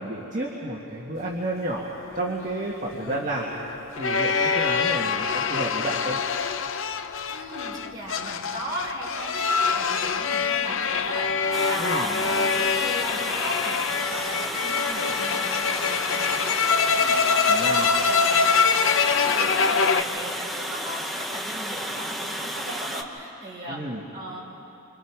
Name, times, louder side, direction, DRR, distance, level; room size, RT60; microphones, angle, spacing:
voice 1, 0.0-1.9 2.1-3.5 4.0-6.2 11.8-12.1 17.5-17.9 23.7-24.0, right 1 dB, 35° right, -5 dB, 1.9 m, -31 dB
sound 1, 2.3-20.0, left 5 dB, 60° left, 0.6 m, -25 dB
voice 2, 7.3-23.8 24.1-24.4, right 1 dB, 20° right, -5 dB, 4.9 m, -36 dB
Water, 11.5-23.0, equal, ahead, 0.9 m, -32 dB
28.5 x 25.5 x 4.8 m, 2.9 s
head